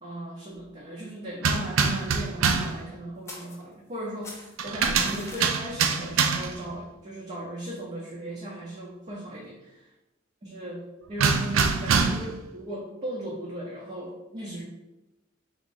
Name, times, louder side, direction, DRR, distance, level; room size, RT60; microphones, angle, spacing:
voice 1, 0.0-9.9 10.4-14.6, right 1 dB, 35° right, -4 dB, 0.7 m, -37 dB
sound 1, 1.4-2.8 4.6-6.6 11.2-12.4, right 5 dB, 75° right, 0.4 m, -25 dB
sound 2, 3.3-4.0 4.2-5.5, left 2 dB, 15° left, 0.6 m, -44 dB
3.7 x 3.0 x 3.9 m, 0.96 s
head